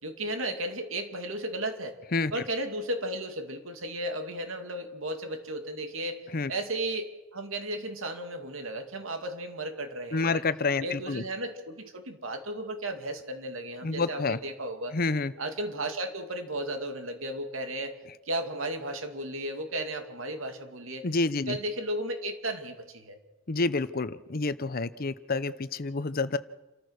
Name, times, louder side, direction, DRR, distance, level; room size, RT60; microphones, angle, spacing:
voice 1, 0.0-2.0 2.3-6.2 6.5-10.4 10.8-14.9 15.4-17.9 18.3-21.0 21.5-23.2, right 1 dB, 85° right, 6 dB, 2.5 m, -34 dB
voice 2, 10.1-11.2 13.8-14.4 14.9-15.3 21.0-21.6 23.5-26.4, left 3 dB, 50° left, 14 dB, 0.8 m, -28 dB
28.5 x 14.0 x 6.5 m, 1.1 s
head